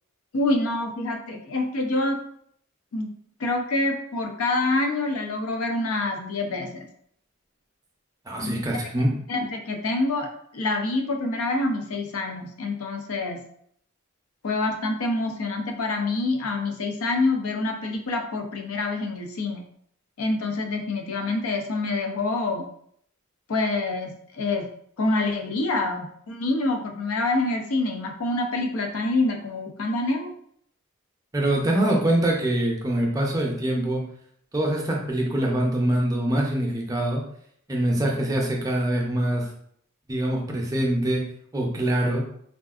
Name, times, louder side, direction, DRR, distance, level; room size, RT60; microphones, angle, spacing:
voice 1, 0.3-2.2 2.9-3.1 3.4-6.9 8.4-8.8 9.3-10.3 10.5-13.4 14.4-19.6 20.2-22.7 23.5-24.7 25.0-30.3, left 2 dB, 85° left, 4 dB, 0.5 m, -26 dB
voice 2, 8.3-9.2 31.3-34.0 34.5-37.2 37.7-39.5 40.1-41.2 41.5-42.2, right 1 dB, 15° right, -1 dB, 0.5 m, -24 dB
3.6 x 2.4 x 2.4 m, 0.67 s
head